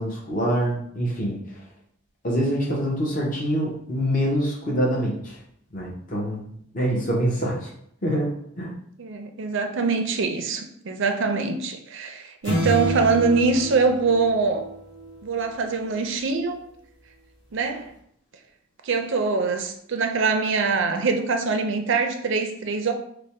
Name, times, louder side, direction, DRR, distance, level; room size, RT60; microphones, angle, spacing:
voice 1, 0.0-1.4 2.2-5.2 5.7-6.5 6.7-7.7 8.0-8.7, equal, 40° left, -3 dB, 0.8 m, -25 dB
voice 2, 9.0-14.7 15.2-16.6 17.5-17.9 18.8-22.9, right 4 dB, 55° right, 5 dB, 0.5 m, -23 dB
sound 1, 12.4-15.1, right 1 dB, 70° left, 1.4 m, -28 dB
3.4 x 2.1 x 4.2 m, 0.69 s
head